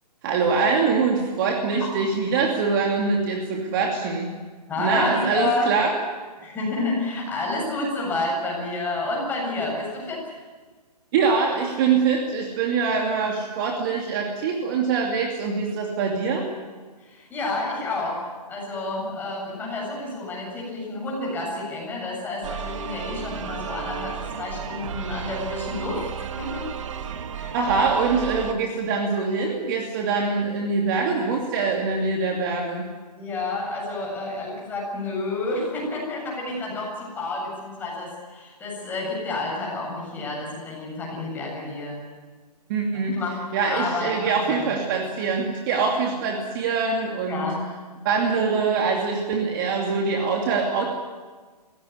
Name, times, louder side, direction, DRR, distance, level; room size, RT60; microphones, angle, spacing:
voice 1, 0.2-4.3 4.8-5.9 11.1-16.4 27.5-32.9 42.7-43.1 43.5-47.5 48.0-50.9, right 5 dB, 30° right, 1 dB, 2.8 m, -24 dB
voice 2, 4.7-5.7 6.4-10.3 17.0-26.1 26.4-26.7 27.3-27.6 33.2-42.0 42.9-43.3 43.6-44.7 47.2-47.6 50.5-50.8, left 2 dB, 10° left, -3 dB, 7.9 m, -30 dB
sound 1, 22.4-28.5, right 7 dB, 50° right, 1.6 m, -33 dB
22.5 x 17.0 x 9.6 m, 1.4 s
hypercardioid pair, 150°, 21 cm